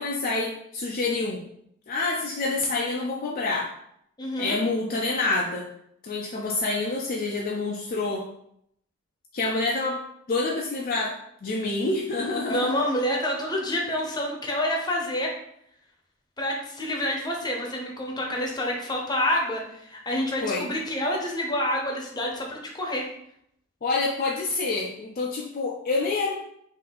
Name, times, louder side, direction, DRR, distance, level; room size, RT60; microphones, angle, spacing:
voice 1, 0.0-1.4 1.9-3.7 4.4-5.7 6.0-8.2 9.3-10.0 10.3-11.1 11.4-12.7 20.4-20.7 23.8-26.3, left 3 dB, 45° left, -2 dB, 0.5 m, -27 dB
voice 2, 4.2-4.6 12.5-15.3 16.4-23.1, left 1 dB, 20° left, 0 dB, 0.8 m, -28 dB
3.8 x 2.7 x 4.2 m, 0.72 s
head